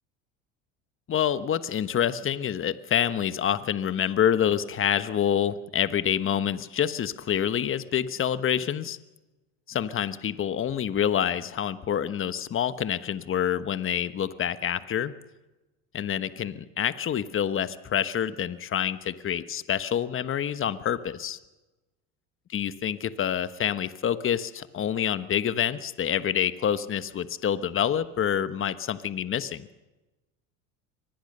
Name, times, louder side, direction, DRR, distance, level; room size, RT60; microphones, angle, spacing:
voice 1, 1.1-9.0 9.7-15.1 15.9-21.4 22.5-29.7, left 9 dB, 35° left, 13 dB, 1.2 m, -27 dB
24.0 x 19.5 x 6.7 m, 1.1 s
supercardioid pair, 90°, 37 cm